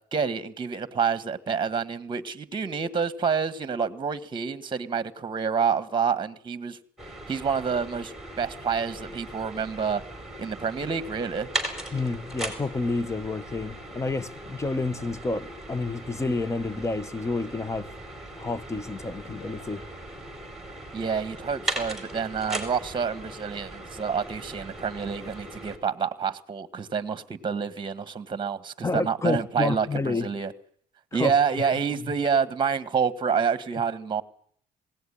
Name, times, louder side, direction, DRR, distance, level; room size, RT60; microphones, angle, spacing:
voice 1, 0.1-6.8 7.3-10.0 10.4-11.5 20.9-30.5 31.1-34.2, right 6 dB, 30° right, 1.5 m, -28 dB
sound 1, 7.0-25.8, right 1 dB, ahead, 4.7 m, -38 dB
voice 2, 11.9-17.9 18.4-19.8 28.8-30.3 31.1-31.4 32.0-32.1, left 3 dB, 15° left, 0.9 m, -29 dB
sound 2, 19.2-20.1 23.1-24.2 24.8-25.0, left 4 dB, 50° left, 5.6 m, -53 dB
20.0 x 17.0 x 10.0 m
cardioid pair, 110°, 17 cm